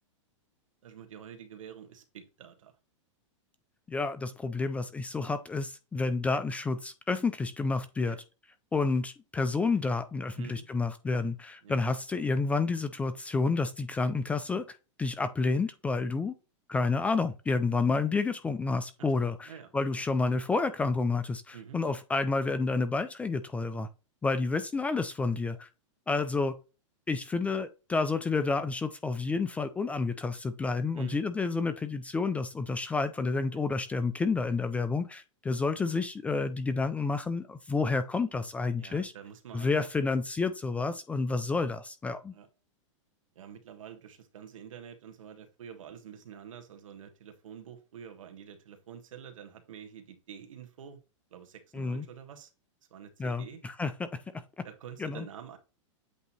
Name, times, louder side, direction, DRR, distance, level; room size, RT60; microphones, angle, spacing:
voice 1, 0.8-2.7 8.1-8.2 10.4-10.7 11.6-11.7 19.0-20.0 21.5-21.8 31.0-31.2 33.5-33.6 38.8-39.9 42.3-42.5 43.3-51.0 51.3-52.5 52.9-53.6 54.6-55.6, right 8 dB, 90° right, 1.6 m, -47 dB
voice 2, 3.9-8.2 8.7-14.6 15.0-16.3 16.7-23.9 24.2-25.7 26.1-26.5 27.1-39.1 39.5-42.3 51.7-52.1 53.2-54.1 54.6-54.7 55.0-55.3, left 3 dB, 10° left, 0.4 m, -30 dB
8.2 x 2.8 x 4.2 m
supercardioid pair, 145°, 16 cm